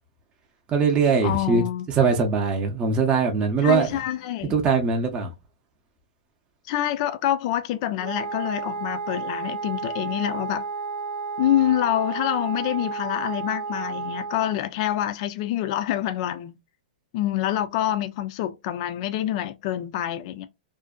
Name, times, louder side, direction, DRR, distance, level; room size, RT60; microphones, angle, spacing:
voice 1, 0.7-1.6 1.9-4.0 4.5-5.3, right 5 dB, 20° right, 0.6 m, -21 dB
voice 2, 1.2-1.9 3.6-4.6 6.7-10.7 11.4-16.6 17.1-20.5, left 12 dB, 45° left, 0.3 m, -26 dB
Wind instrument woodwind instrument, 8.0-14.6, right 5 dB, 85° right, 0.5 m, -32 dB
2.5 x 2.1 x 2.3 m
hypercardioid pair, 135°, 5 cm